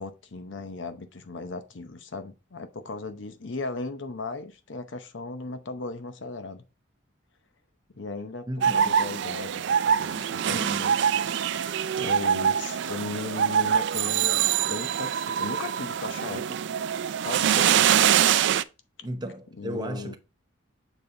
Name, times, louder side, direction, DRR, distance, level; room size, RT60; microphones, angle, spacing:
voice 1, 0.0-6.6 7.9-8.5 8.7-11.0 11.2-16.6 17.2-18.1 19.6-20.2, left 3 dB, 65° left, 0.8 m, -37 dB
voice 2, 8.5-8.9 10.1-10.9 19.0-20.2, equal, 20° right, 0.8 m, -35 dB
sound 1, 8.6-18.6, right 8 dB, 65° right, 0.4 m, -24 dB
7.0 x 4.2 x 3.8 m
head